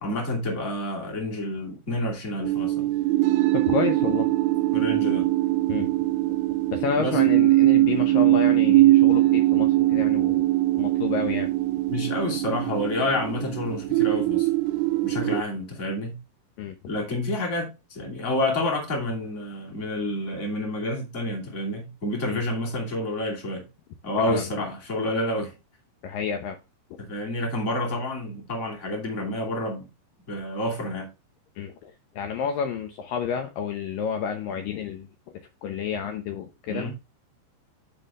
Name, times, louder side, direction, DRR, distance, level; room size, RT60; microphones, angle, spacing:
voice 1, 0.0-2.9 4.7-5.3 7.0-7.2 11.9-14.5 15.0-16.2 16.9-23.7 24.0-25.5 27.0-29.9 30.3-31.1 36.7-36.9, left 1 dB, 25° left, 1.9 m, -29 dB
sound 1, 2.4-15.4, right 17 dB, 85° right, 2.3 m, -21 dB
voice 2, 3.5-4.3 5.7-5.9 6.7-10.5 10.7-11.5 16.6-16.8 22.2-22.4 24.2-24.5 26.0-26.6 31.6-35.1 35.6-36.9, left 7 dB, 85° left, 1.9 m, -30 dB
10.5 x 4.5 x 3.6 m
omnidirectional pair, 5.3 m